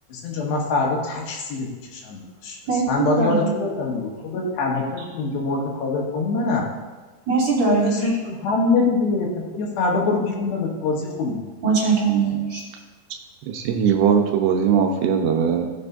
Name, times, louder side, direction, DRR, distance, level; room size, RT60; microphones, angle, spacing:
voice 1, 0.1-2.6 2.9-6.7 7.7-11.4, left 3 dB, 85° left, -1 dB, 3.8 m, -24 dB
voice 2, 2.6-3.6 7.3-8.3 11.6-12.6, right 4 dB, 40° right, -6 dB, 4.1 m, -21 dB
voice 3, 13.5-15.7, right 7 dB, 80° right, 3 dB, 2.7 m, -19 dB
18.0 x 7.5 x 2.7 m, 1.3 s
omnidirectional pair, 4.8 m